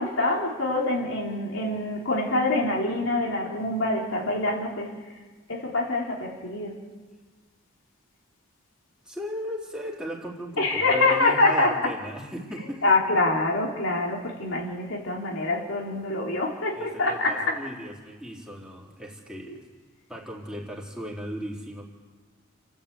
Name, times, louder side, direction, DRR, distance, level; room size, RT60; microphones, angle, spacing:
voice 1, 0.0-4.9 5.5-6.8 10.6-11.8 12.8-17.5, left 2 dB, 75° left, -1 dB, 3.3 m, -25 dB
voice 2, 9.0-13.0 16.7-19.7 20.1-21.8, equal, 5° right, -3 dB, 3.7 m, -36 dB
29.5 x 11.5 x 8.6 m, 1.4 s
head